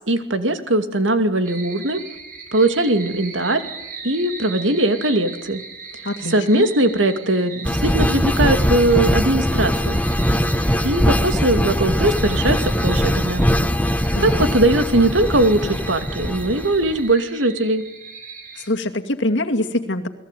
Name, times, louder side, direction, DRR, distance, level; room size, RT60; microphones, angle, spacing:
voice 1, 0.0-2.0 2.5-3.6 4.0-5.6 6.3-10.0 10.8-13.5 14.2-17.8, right 1 dB, 80° right, 8 dB, 2.6 m, -20 dB
sound 1, 1.4-18.7, right 5 dB, 45° right, 5.0 m, -38 dB
voice 2, 6.0-6.7 14.1-14.5 18.6-20.1, left 1 dB, 65° left, 5 dB, 2.5 m, -24 dB
sound 2, 7.6-17.0, equal, 10° left, 1.2 m, -21 dB
29.0 x 21.0 x 9.3 m, 1.0 s
head